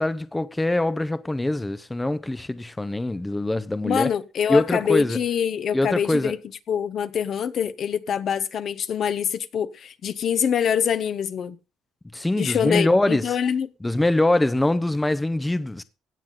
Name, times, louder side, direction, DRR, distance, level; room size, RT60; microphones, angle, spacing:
voice 1, 0.0-4.1 4.5-5.2 5.7-6.4 12.1-13.3 13.8-15.8, left 1 dB, 10° left, 0.7 m, -23 dB
voice 2, 3.8-6.4 6.7-11.6 12.4-13.7, left 8 dB, 55° left, 0.9 m, -25 dB
16.5 x 7.3 x 3.8 m
cardioid pair, 90°, 0 cm